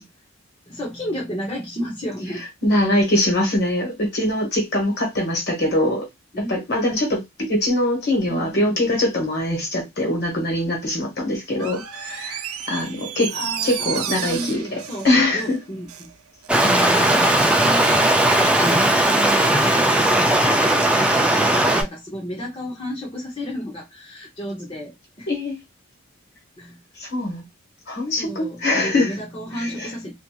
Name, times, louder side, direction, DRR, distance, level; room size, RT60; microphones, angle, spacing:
voice 1, 0.7-2.4 6.3-6.6 8.3-8.8 13.3-16.1 17.6-25.3 26.6-26.8 28.2-30.1, equal, 25° left, 0.7 m, -32 dB
voice 2, 2.6-6.1 6.4-13.3 13.6-15.6 16.6-17.2 25.3-25.6 27.0-27.4 27.9-29.1 29.6-29.9, left 1 dB, 50° left, 1.3 m, -23 dB
Door, 11.5-16.1 16.4-16.5, right 9 dB, 85° right, 0.5 m, -32 dB
Stream, 16.5-21.8, right 1 dB, 5° right, 0.3 m, -17 dB
2.9 x 2.5 x 2.3 m
head